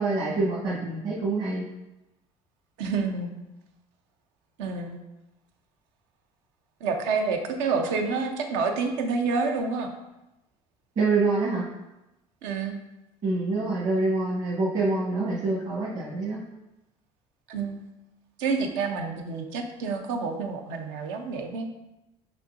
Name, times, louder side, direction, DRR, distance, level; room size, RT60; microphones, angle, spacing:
voice 1, 0.0-1.6 10.9-11.6 13.2-16.4, right 3 dB, 45° right, -7 dB, 1.5 m, -26 dB
voice 2, 2.8-3.3 4.6-5.0 6.8-9.9 12.4-12.8 17.5-17.9 18.4-21.6, right 4 dB, 75° right, 4 dB, 0.6 m, -28 dB
5.8 x 3.0 x 2.5 m, 0.94 s
hypercardioid pair, 65°, 18 cm